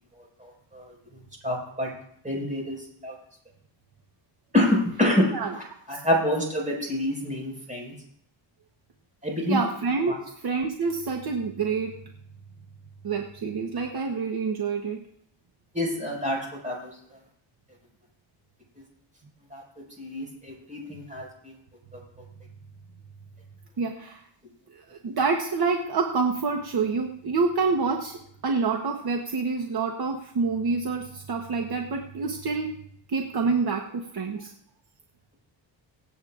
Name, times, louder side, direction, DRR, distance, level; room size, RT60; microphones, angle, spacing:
voice 1, 0.4-0.9 1.4-1.9 2.2-2.8 3.0-3.1 4.5-5.3 5.5-7.9 9.2-9.6 15.7-16.4 16.6-16.9 19.5-19.6 20.0-21.5, left 1 dB, 15° right, -2 dB, 5.1 m, -27 dB
voice 2, 9.5-11.9 13.0-15.0 23.8-24.2 24.7-32.8 33.1-34.5, right 4 dB, 50° right, 2 dB, 1.1 m, -27 dB
24.0 x 8.4 x 2.5 m, 0.70 s
wide cardioid pair, 140°, 46 cm